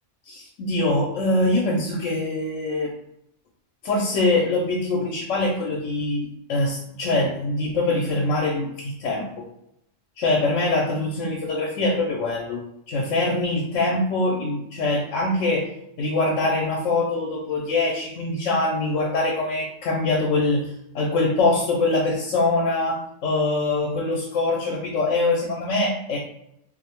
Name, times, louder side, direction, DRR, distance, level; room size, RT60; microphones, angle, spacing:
voice 1, 0.3-2.9 3.8-9.5 10.2-15.7 16.0-26.2, left 2 dB, 80° left, -1 dB, 0.9 m, -23 dB
2.4 x 2.1 x 2.9 m, 0.80 s
omnidirectional pair, 1.3 m